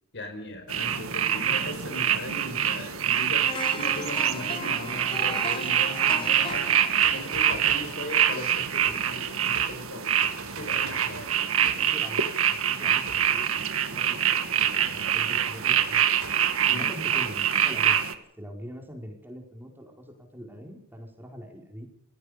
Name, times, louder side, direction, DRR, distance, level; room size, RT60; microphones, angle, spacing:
voice 1, 0.1-3.5 3.7-10.2 10.5-11.3 16.7-16.9, left 2 dB, 55° left, 8 dB, 5.0 m, -38 dB
sound 1, 0.7-18.1, right 9 dB, 65° right, 1.9 m, -25 dB
sound 2, 3.4-9.4 9.8-9.9, left 4 dB, 25° left, 1.1 m, -39 dB
sound 3, 6.5-7.9 8.8-9.2 9.5-9.9 10.2-12.0 13.0-13.5 14.6-15.1 16.2-16.6, right 3 dB, 80° right, 5.5 m, -43 dB
voice 2, 11.4-14.5 14.7-16.2 16.7-21.9, equal, 10° right, 2 dB, 5.0 m, -43 dB
29.0 x 17.5 x 5.3 m, 0.70 s
head